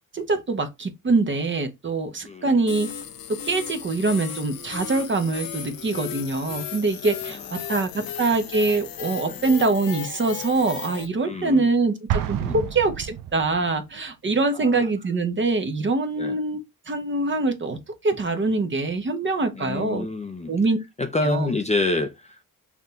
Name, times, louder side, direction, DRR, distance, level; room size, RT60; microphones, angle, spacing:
voice 1, 0.1-2.9 3.3-16.6 16.9-20.1 20.5-20.8 21.2-21.5, right 3 dB, 35° right, 0.8 m, -24 dB
voice 2, 2.2-2.6 7.3-7.4 8.0-8.1 9.2-9.4 11.2-11.7 12.4-12.6 14.5-14.9 16.2-16.4 19.5-20.5 21.0-22.4, left 2 dB, 20° left, 0.5 m, -28 dB
sound 1, 2.7-11.1, left 9 dB, 75° left, 0.7 m, -35 dB
Explosion, 12.1-13.8, right 10 dB, 70° right, 0.5 m, -29 dB
5.8 x 2.7 x 2.2 m
cardioid pair, 70°, 35 cm